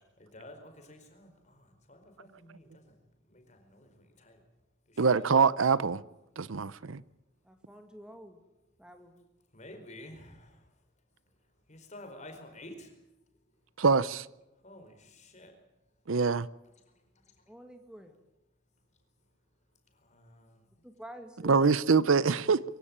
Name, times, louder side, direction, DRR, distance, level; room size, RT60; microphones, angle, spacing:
voice 1, 0.2-2.8 3.3-4.4 4.9-5.3 9.5-10.6 11.7-12.9 14.6-15.5 20.0-20.6, left 1 dB, 35° left, 5 dB, 4.8 m, -50 dB
voice 2, 5.0-6.0 6.4-7.0 13.8-14.2 16.1-16.5 21.4-22.6, right 5 dB, 85° right, 19 dB, 0.7 m, -24 dB
voice 3, 7.4-8.4 8.8-9.2 17.5-18.2 20.8-21.8, equal, 5° right, 6 dB, 2.1 m, -49 dB
24.0 x 16.0 x 8.8 m, 0.97 s
head